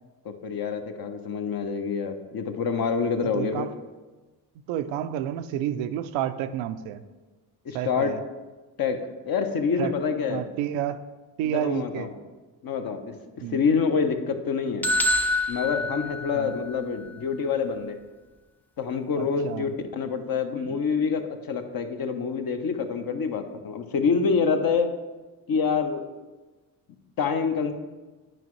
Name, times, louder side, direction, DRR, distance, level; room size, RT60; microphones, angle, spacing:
voice 1, 0.2-3.7 7.6-8.1 8.8-9.0 9.3-10.4 11.4-12.1 12.6-13.1 13.5-14.9 15.5-18.0 18.8-24.9 25.5-26.0 27.2-27.7, left 5 dB, 50° left, 6 dB, 0.9 m, -26 dB
voice 2, 3.2-3.7 4.7-7.0 7.7-8.2 9.8-9.9 10.3-11.0 11.4-12.1 13.4-13.6 16.3-16.5 19.1-19.7 20.6-20.8, right 11 dB, 80° right, 11 dB, 0.5 m, -30 dB
sound 1, 14.8-16.8, left 1 dB, 5° left, 0.4 m, -26 dB
9.2 x 4.9 x 3.1 m, 1.2 s
supercardioid pair, 55°, 46 cm